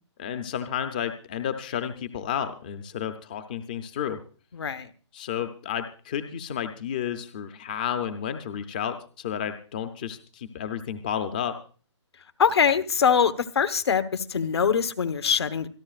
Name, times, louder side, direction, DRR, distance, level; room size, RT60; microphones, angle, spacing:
voice 1, 0.2-4.2 5.1-11.6, left 9 dB, 15° left, 9 dB, 0.5 m, -31 dB
voice 2, 4.5-4.9 12.4-15.7, left 7 dB, 60° left, 13 dB, 1.2 m, -23 dB
26.5 x 11.0 x 2.4 m, 0.38 s
hypercardioid pair, 175°, 15 cm